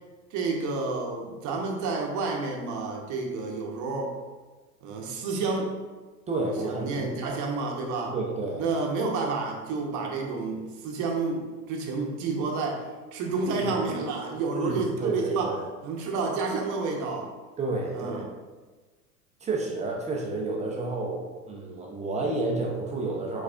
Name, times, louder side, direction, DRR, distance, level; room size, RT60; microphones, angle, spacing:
voice 1, 0.3-4.2 4.8-5.7 6.6-8.1 8.6-12.8 13.1-15.5 15.8-17.3 17.9-18.2, right 4 dB, 35° right, 1 dB, 0.9 m, -30 dB
voice 2, 6.3-7.4 8.1-8.6 13.6-13.8 14.5-15.7 17.6-18.3 19.4-23.4, right 2 dB, 15° right, 0 dB, 0.6 m, -30 dB
4.8 x 4.1 x 2.4 m, 1.3 s
hypercardioid pair, 90°, 49 cm